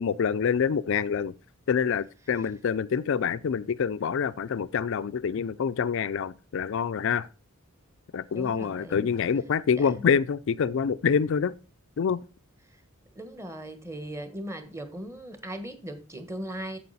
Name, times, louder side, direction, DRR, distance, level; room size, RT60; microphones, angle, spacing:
voice 1, 0.0-1.3 1.7-7.3 8.1-11.5 12.0-12.2, left 6 dB, 60° left, 0.4 m, -26 dB
voice 2, 8.3-9.1 9.7-10.1 12.7-12.8 13.1-16.8, right 1 dB, 15° right, 1.3 m, -38 dB
8.5 x 7.4 x 4.1 m
head